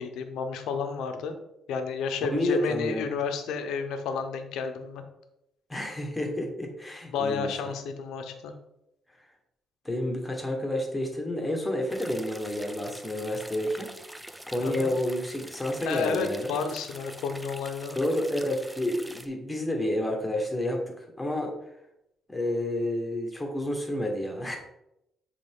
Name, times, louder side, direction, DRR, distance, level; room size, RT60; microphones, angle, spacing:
voice 1, 0.0-1.4 1.7-5.0 7.1-8.5 14.6-14.9 15.8-18.0, left 5 dB, 85° left, 7 dB, 0.8 m, -31 dB
voice 2, 2.3-3.1 5.7-7.5 9.8-13.9 14.5-16.5 17.9-21.5 22.3-24.6, left 1 dB, 15° left, 2 dB, 1.5 m, -30 dB
sound 1, 11.9-19.3, right 1 dB, 5° right, 0.5 m, -45 dB
7.6 x 3.3 x 3.8 m, 0.84 s
cardioid pair, 90°, 0 cm